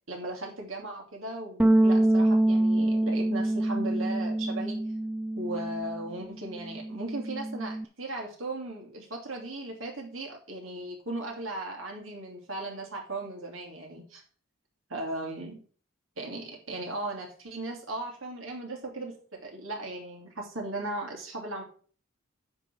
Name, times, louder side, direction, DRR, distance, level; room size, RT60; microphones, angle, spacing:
voice 1, 0.1-4.8 5.4-14.2 14.9-15.6 16.2-21.6, right 2 dB, 80° right, 0 dB, 2.7 m, -37 dB
sound 1, 1.6-6.2 6.4-7.8, right 1 dB, 5° right, 0.3 m, -26 dB
9.7 x 3.9 x 6.8 m, 0.42 s
head